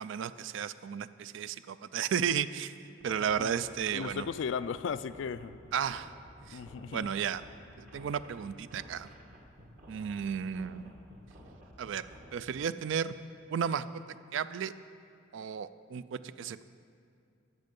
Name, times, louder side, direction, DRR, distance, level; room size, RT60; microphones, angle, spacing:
voice 1, 0.0-2.8 3.0-4.3 5.7-6.1 6.5-6.6 6.9-7.4 7.8-9.1 9.9-10.9 11.8-12.1 12.3-13.1 13.5-14.7 15.3-16.6, right 7 dB, 65° right, 14 dB, 0.3 m, -33 dB
sound 1, 3.0-12.3, equal, 45° right, 1.3 m, -53 dB
voice 2, 3.9-5.6 6.5-7.1, left 6 dB, 65° left, 15 dB, 0.3 m, -36 dB
13.0 x 6.6 x 5.3 m, 2.4 s
head